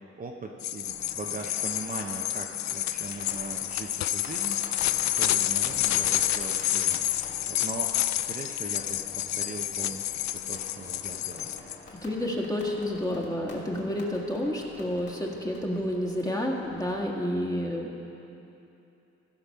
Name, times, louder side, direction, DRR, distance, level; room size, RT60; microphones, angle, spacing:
voice 1, 0.0-4.8 5.2-7.2 7.5-11.5, right 3 dB, 30° right, 1 dB, 0.8 m, -40 dB
sound 1, 0.6-11.8, left 13 dB, 65° left, 0.5 m, -29 dB
sound 2, 0.8-17.1, left 2 dB, 35° left, 2.8 m, -47 dB
voice 2, 12.0-18.0, left 1 dB, 10° left, -1 dB, 1.6 m, -30 dB
15.5 x 5.8 x 5.6 m, 2.8 s
cardioid pair, 90°, 30 cm